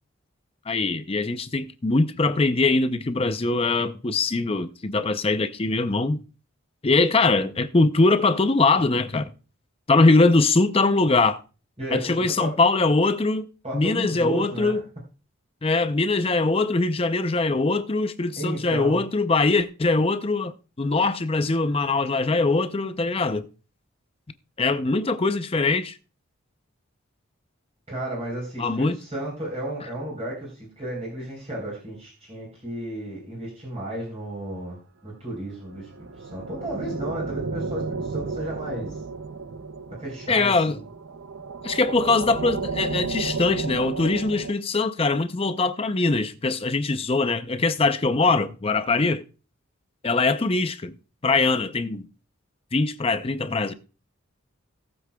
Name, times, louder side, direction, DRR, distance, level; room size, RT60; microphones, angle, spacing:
voice 1, 0.7-6.2 6.8-9.3 9.9-11.4 11.9-13.5 13.7-14.8 15.6-23.5 24.6-26.0 28.6-29.0 40.3-40.8 41.6-49.2 50.0-50.9 51.2-52.0 52.7-53.7, left 3 dB, 25° left, 0.5 m, -22 dB
voice 2, 11.8-12.5 13.6-14.8 18.4-19.0 27.9-39.0 39.9-40.8, right 1 dB, 30° right, 4.0 m, -33 dB
sound 1, 35.7-44.5, right 4 dB, 65° right, 0.6 m, -33 dB
18.0 x 7.8 x 2.3 m
head